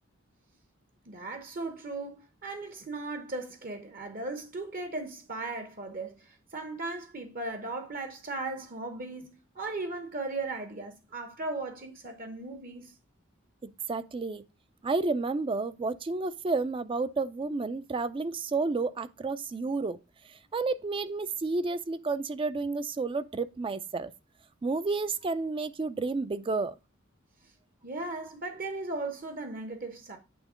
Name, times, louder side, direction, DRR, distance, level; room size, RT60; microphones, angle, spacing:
voice 1, 1.1-12.9 27.8-30.2, right 2 dB, 45° right, 0.9 m, -37 dB
voice 2, 13.6-14.4 14.8-20.0 20.5-24.1 24.6-26.7, right 3 dB, 25° right, 0.4 m, -31 dB
8.6 x 3.7 x 4.9 m
head